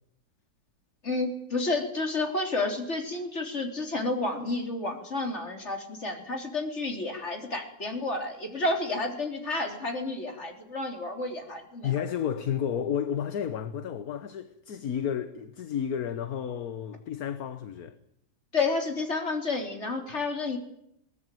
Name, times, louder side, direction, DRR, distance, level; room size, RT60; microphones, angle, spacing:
voice 1, 1.0-11.9 18.5-20.6, left 2 dB, 45° left, 3.9 m, -30 dB
voice 2, 11.8-18.0, left 8 dB, 65° left, 1.5 m, -31 dB
21.5 x 19.0 x 9.1 m
omnidirectional pair, 1.7 m